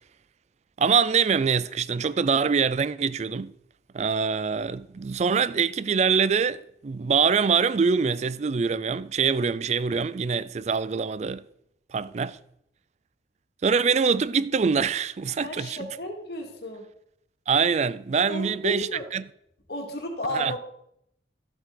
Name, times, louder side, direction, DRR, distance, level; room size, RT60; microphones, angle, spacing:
voice 1, 0.8-3.5 3.9-11.4 11.9-12.4 13.6-15.9 17.5-18.9 19.1-19.3 20.3-20.5, right 5 dB, 40° right, 0.4 m, -24 dB
voice 2, 15.4-16.9 18.3-19.0 19.7-20.6, left 1 dB, 65° left, 2.2 m, -33 dB
12.5 x 7.9 x 3.9 m
head